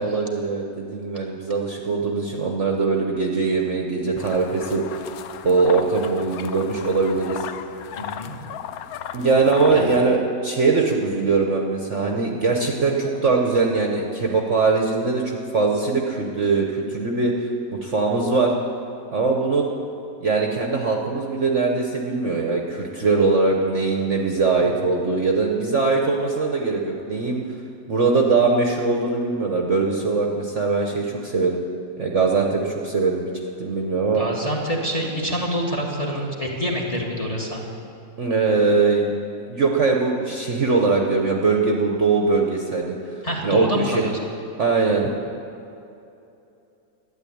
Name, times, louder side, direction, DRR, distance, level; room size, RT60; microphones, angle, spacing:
voice 1, 0.0-5.1 5.4-7.5 9.1-18.5 19.1-19.7 20.2-27.4 27.9-31.6 32.0-33.3 33.6-34.2 38.2-39.1 39.5-42.9 43.4-44.0 44.6-45.2, right 4 dB, 50° right, 1 dB, 1.1 m, -21 dB
sound 1, 4.2-10.2, left 9 dB, 70° left, 0.9 m, -36 dB
voice 2, 7.9-8.3 9.7-9.9 24.6-24.7 34.1-37.6 43.2-44.1, equal, 20° left, -1 dB, 1.6 m, -26 dB
12.5 x 10.0 x 8.5 m, 2.7 s
omnidirectional pair, 1.9 m